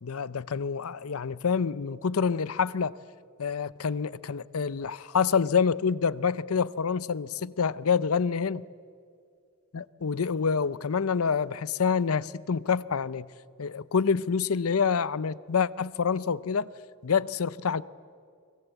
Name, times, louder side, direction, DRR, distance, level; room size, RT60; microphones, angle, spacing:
voice 1, 0.0-3.0 3.4-8.6 9.7-13.3 13.6-16.7 17.0-17.8, left 6 dB, 75° left, 0.6 m, -27 dB
29.5 x 22.0 x 8.1 m
head